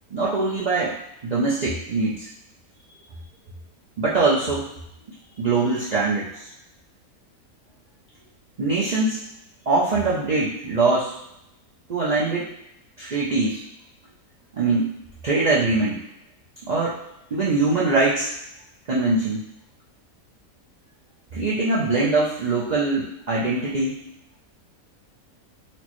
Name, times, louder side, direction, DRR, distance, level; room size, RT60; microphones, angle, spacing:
voice 1, 0.1-0.9 1.2-2.3 4.0-4.6 5.4-6.4 8.6-9.2 9.7-11.2 11.9-12.5 13.0-13.6 14.5-14.9 15.2-16.0 16.7-17.0 17.3-18.3 18.9-19.4 21.3-24.0, right 3 dB, 70° right, -7 dB, 0.4 m, -22 dB
4.3 x 2.1 x 3.0 m, 0.81 s
omnidirectional pair, 1.5 m